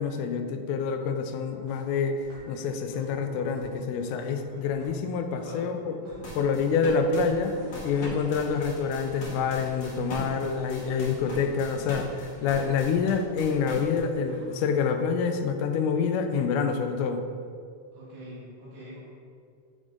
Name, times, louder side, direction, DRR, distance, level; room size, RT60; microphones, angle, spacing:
voice 1, 0.0-2.2 2.5-6.0 6.4-7.6 7.8-17.2, left 5 dB, 85° left, 7 dB, 2.0 m, -27 dB
sound 1, 1.3-8.0 8.5-8.6 9.2-9.3, left 1 dB, 30° right, 1.5 m, -49 dB
voice 2, 5.3-5.7 6.1-6.3 17.9-19.0, equal, 75° right, -9 dB, 2.8 m, -44 dB
sound 2, 6.2-14.0, left 1 dB, 55° left, 1.3 m, -40 dB
Toilet flush, 7.3-15.0, right 1 dB, 55° right, 2.7 m, -50 dB
6.2 x 5.1 x 3.7 m, 2.3 s
omnidirectional pair, 3.6 m